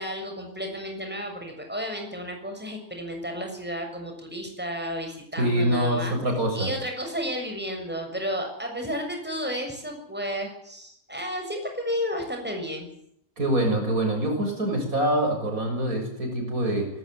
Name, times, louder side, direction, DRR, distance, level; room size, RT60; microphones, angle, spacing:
voice 1, 0.0-6.1 6.5-12.9, equal, 5° right, 3 dB, 6.8 m, -32 dB
voice 2, 5.4-6.7 13.4-16.9, right 1 dB, 70° right, 3 dB, 7.4 m, -25 dB
19.5 x 18.5 x 9.4 m, 0.72 s
omnidirectional pair, 1.6 m